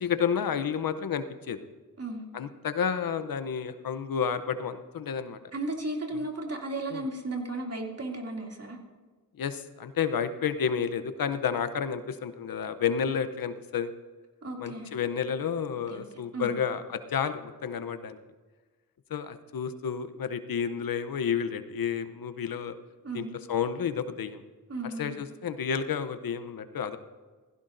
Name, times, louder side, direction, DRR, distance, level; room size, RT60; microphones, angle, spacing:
voice 1, 0.0-1.6 2.3-5.4 6.1-6.2 6.9-7.1 9.4-13.9 14.6-18.2 19.1-22.7 23.1-24.4 25.0-27.0, left 7 dB, 75° left, 11 dB, 0.8 m, -31 dB
voice 2, 5.5-8.8 14.4-14.9 15.9-16.0 16.3-16.5 23.0-23.3 24.7-25.1, right 2 dB, 45° right, 1 dB, 2.6 m, -34 dB
16.0 x 15.5 x 2.6 m, 1.4 s
cardioid pair, 50°, 35 cm